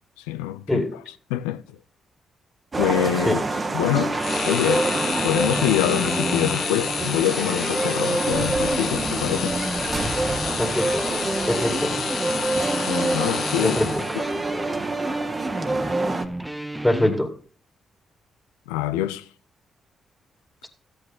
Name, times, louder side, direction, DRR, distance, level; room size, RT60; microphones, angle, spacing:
voice 1, 0.3-0.8 1.3-1.6 2.8-3.4 3.7-4.2 4.4-4.9 5.2-9.6 12.9-13.8 14.1-14.2 18.7-19.2, left 13 dB, 85° left, 0.4 m, -25 dB
sound 1, 2.7-16.3, right 2 dB, 40° right, 1.3 m, -27 dB
sound 2, 4.1-17.2, right 1 dB, 10° right, 0.9 m, -33 dB
sound 3, 4.2-14.3, left 7 dB, 65° left, 1.0 m, -30 dB
voice 2, 10.6-11.0 11.5-12.0 13.6-14.0 16.8-17.3, left 1 dB, 10° left, 2.2 m, -23 dB
13.0 x 8.6 x 3.9 m
hypercardioid pair, 45°, 0 cm